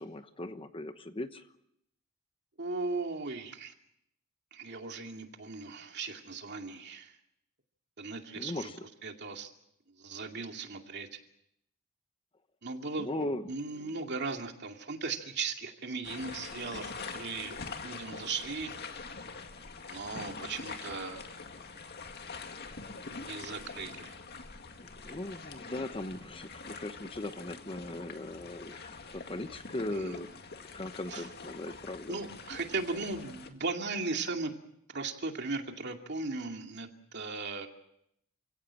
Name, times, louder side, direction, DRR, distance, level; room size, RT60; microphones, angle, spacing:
voice 1, 0.0-1.4 8.3-8.8 13.0-13.5 25.0-30.3 30.7-32.2, left 1 dB, 25° left, 10 dB, 1.1 m, -38 dB
voice 2, 2.6-3.7 4.5-7.1 8.0-8.7 9.0-9.5 10.0-11.2 12.6-13.1 13.5-18.7 19.9-21.3 23.3-24.2 29.9-30.2 31.1-31.3 32.1-34.5 34.9-37.7, right 4 dB, 55° right, 4 dB, 2.4 m, -37 dB
sound 1, 16.0-33.5, left 4 dB, 50° left, 2.1 m, -45 dB
28.5 x 17.0 x 7.5 m, 0.77 s
head